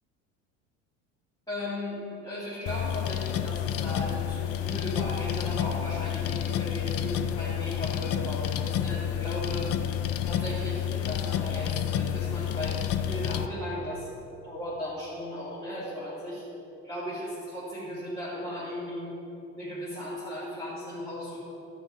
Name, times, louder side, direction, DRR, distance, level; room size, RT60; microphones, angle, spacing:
voice 1, 1.5-9.8 10.2-14.1 14.4-16.4 16.8-19.2 19.5-21.4, left 1 dB, 10° left, -10 dB, 2.2 m, -36 dB
sound 1, 2.7-13.5, left 10 dB, 40° left, 0.5 m, -30 dB
13.0 x 5.9 x 4.3 m, 2.9 s
supercardioid pair, 110°, 36 cm